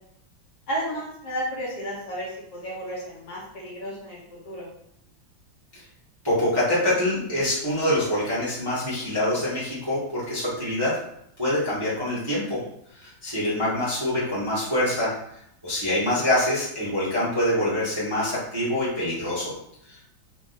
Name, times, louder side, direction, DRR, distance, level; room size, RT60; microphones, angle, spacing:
voice 1, 0.7-4.7 13.4-13.7, equal, 60° left, -4 dB, 1.3 m, -33 dB
voice 2, 6.2-10.9 11.4-12.6 12.9-15.1 15.6-19.5 19.9-20.0, left 1 dB, 15° right, -9 dB, 0.9 m, -25 dB
3.6 x 2.7 x 3.9 m, 0.73 s
omnidirectional pair, 2.1 m